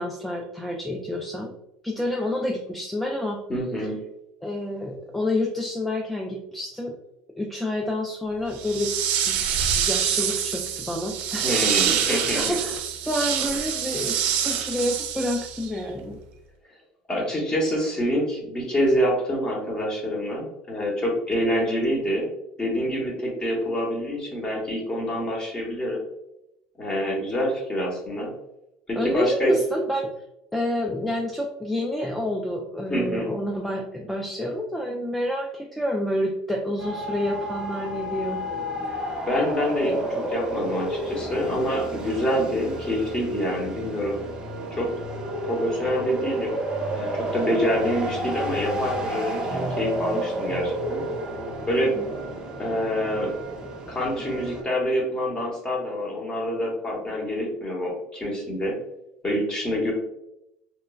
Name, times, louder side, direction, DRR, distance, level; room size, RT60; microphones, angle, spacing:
voice 1, 0.0-1.5 1.8-3.4 4.4-7.0 7.4-8.9 9.2-9.4 9.7-16.2 29.0-30.1 30.5-38.4 52.0-52.1, left 1 dB, 5° left, -1 dB, 0.3 m, -28 dB
voice 2, 3.5-3.9 11.4-12.4 17.1-22.3 22.6-26.0 26.8-28.3 28.9-29.5 32.9-33.3 39.3-44.2 44.7-44.9 45.4-46.5 46.9-51.0 51.7-51.9 52.6-53.3 53.9-58.7 59.2-59.9, equal, 20° left, -1 dB, 1.0 m, -26 dB
sound 1, 8.5-15.8, right 8 dB, 65° right, 0.4 m, -26 dB
sound 2, 36.8-54.6, right 1 dB, 20° right, 0.8 m, -31 dB
3.0 x 2.2 x 2.3 m, 0.84 s
supercardioid pair, 105°, 3 cm